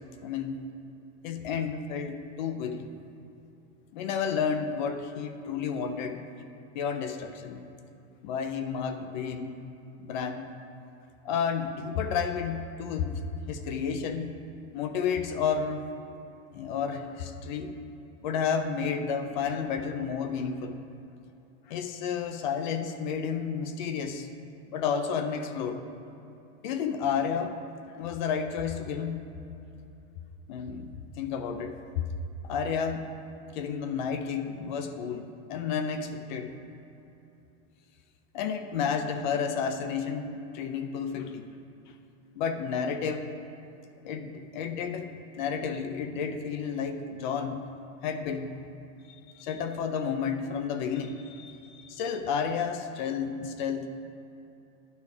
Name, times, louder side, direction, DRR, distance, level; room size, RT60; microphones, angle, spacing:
voice 1, 0.2-0.6 1.2-2.9 3.9-6.3 6.7-7.6 8.2-9.6 10.0-10.5 11.2-14.4 14.7-15.9 16.5-17.7 18.2-20.8 21.7-24.3 24.7-25.8 26.6-29.2 30.5-32.1 32.4-33.1 33.5-36.5 38.3-41.5 41.9-42.0 42.4-43.3 44.0-45.1 45.4-47.7 48.0-48.6 49.1-53.9, left 6 dB, 40° left, 8 dB, 0.4 m, -31 dB
10.5 x 4.9 x 4.8 m, 2.8 s
supercardioid pair, 170°, 38 cm